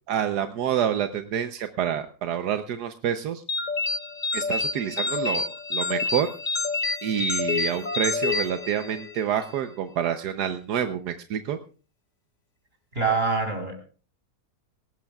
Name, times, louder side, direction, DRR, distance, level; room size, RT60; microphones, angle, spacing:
voice 1, 0.1-3.4 4.3-6.3 7.0-11.6, right 9 dB, 80° right, 9 dB, 1.4 m, -28 dB
sound 1, 3.5-9.2, left 4 dB, 35° left, 0.9 m, -28 dB
voice 2, 12.9-13.8, right 4 dB, 35° right, 5 dB, 4.6 m, -25 dB
18.5 x 17.5 x 2.3 m, 0.37 s
omnidirectional pair, 1.7 m